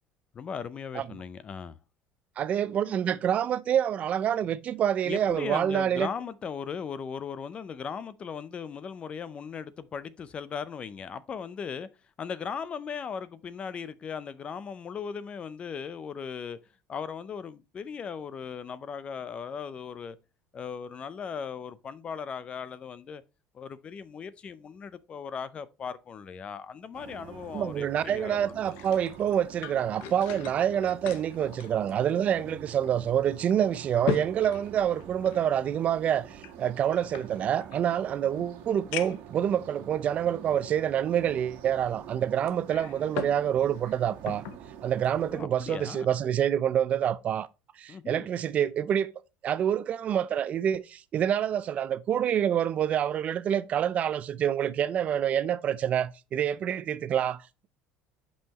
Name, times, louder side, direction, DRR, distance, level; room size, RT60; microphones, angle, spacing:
voice 1, 0.3-1.8 5.0-11.9 12.2-16.6 16.9-20.2 20.5-23.2 23.5-28.7 32.3-32.6 45.3-46.1 47.9-48.3, left 6 dB, 30° left, 0.5 m, -38 dB
voice 2, 2.4-6.1 27.5-44.4 44.8-47.5 47.8-49.1 49.4-57.7, right 9 dB, 40° right, 0.4 m, -27 dB
sound 1, 26.9-45.4, right 9 dB, 65° right, 1.5 m, -47 dB
sound 2, 28.5-32.5 32.8-32.9 33.5-35.5 36.4-37.8 38.4-38.5 38.9-39.3 40.1-40.2 42.5-43.4 43.7-44.6 45.0-45.2, left 11 dB, 75° left, 0.8 m, -39 dB
8.4 x 5.6 x 2.9 m
cardioid pair, 140°, 4 cm